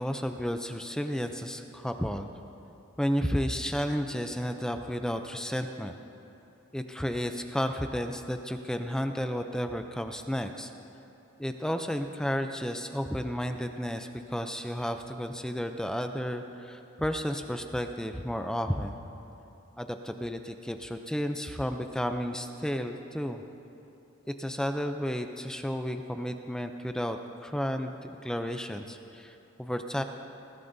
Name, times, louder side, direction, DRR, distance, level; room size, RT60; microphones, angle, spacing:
voice 1, 0.0-2.3 3.0-5.9 6.7-10.7 11.4-18.9 19.8-23.4 24.3-30.0, equal, 5° left, 6 dB, 0.4 m, -32 dB
20.5 x 15.0 x 2.7 m, 2.9 s
head